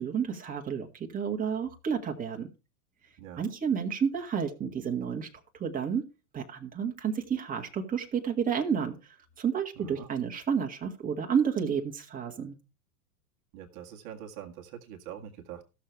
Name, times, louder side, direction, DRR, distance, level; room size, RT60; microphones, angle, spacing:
voice 1, 0.0-2.5 3.4-5.3 5.5-6.0 6.3-12.6, right 7 dB, 20° right, 3 dB, 1.7 m, -31 dB
voice 2, 9.8-10.1 13.5-15.6, right 9 dB, 40° right, 3 dB, 1.8 m, -44 dB
14.5 x 6.8 x 4.6 m, 0.31 s
hypercardioid pair, 110°, 45 cm